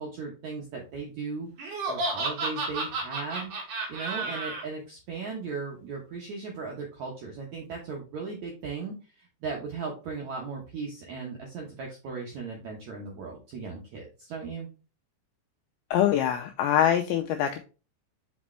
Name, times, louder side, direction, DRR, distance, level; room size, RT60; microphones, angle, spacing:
voice 1, 0.0-14.7, right 4 dB, 80° right, -1 dB, 1.6 m, -37 dB
Laughter, 1.6-4.6, right 3 dB, 55° right, 2.9 m, -31 dB
voice 2, 15.9-17.6, left 10 dB, 90° left, 5 dB, 2.1 m, -24 dB
6.2 x 5.2 x 3.2 m, 0.34 s
omnidirectional pair, 5.0 m